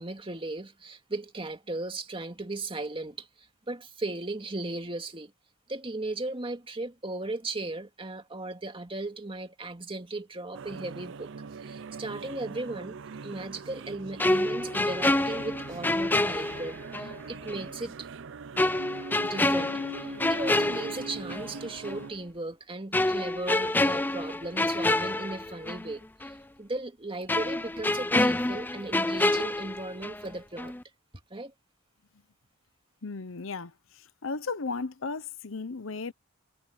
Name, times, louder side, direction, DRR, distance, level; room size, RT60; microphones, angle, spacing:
voice 1, 0.0-5.3 5.7-11.3 11.7-13.0 13.2-18.1 19.2-30.7 31.3-31.5, right 2 dB, 25° right, 2.2 m, -37 dB
sound 1, 10.5-22.1, right 4 dB, 60° right, 0.6 m, -42 dB
sound 2, 14.2-17.1 17.5-17.6 18.6-21.5 21.8-22.0 22.9-25.9 26.2-26.3 27.3-30.3 30.6-30.8, left 2 dB, 10° left, 0.4 m, -27 dB
voice 2, 33.0-36.1, left 4 dB, 65° left, 0.9 m, -35 dB
head